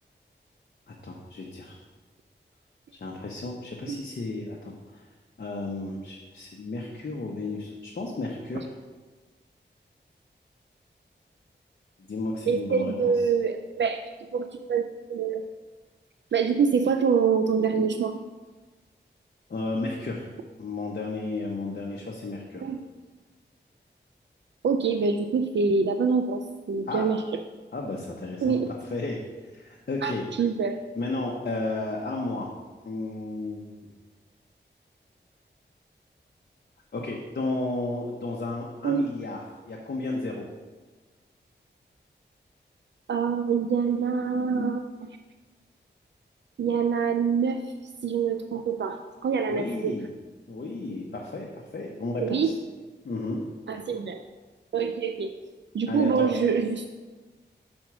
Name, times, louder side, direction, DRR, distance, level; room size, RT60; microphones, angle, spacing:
voice 1, 0.9-1.8 2.9-5.1 5.4-8.7 12.1-13.1 19.5-20.2 20.6-22.7 26.9-27.1 27.7-28.5 28.9-29.3 29.5-30.2 31.0-32.5 32.8-33.8 36.9-40.5 49.5-50.1 50.5-52.5 53.0-53.4 55.9-56.3, left 2 dB, 55° left, -1 dB, 0.9 m, -33 dB
voice 2, 12.5-14.0 14.3-14.8 15.1-15.4 16.3-18.2 22.6-22.8 24.6-27.2 28.4-28.7 30.0-30.8 38.8-39.1 43.1-45.2 46.6-47.6 48.0-49.9 52.2-52.6 53.7-54.2 54.7-55.3 55.7-56.9, right 5 dB, 70° right, 6 dB, 0.4 m, -25 dB
6.1 x 4.3 x 6.0 m, 1.3 s
wide cardioid pair, 85°, 19 cm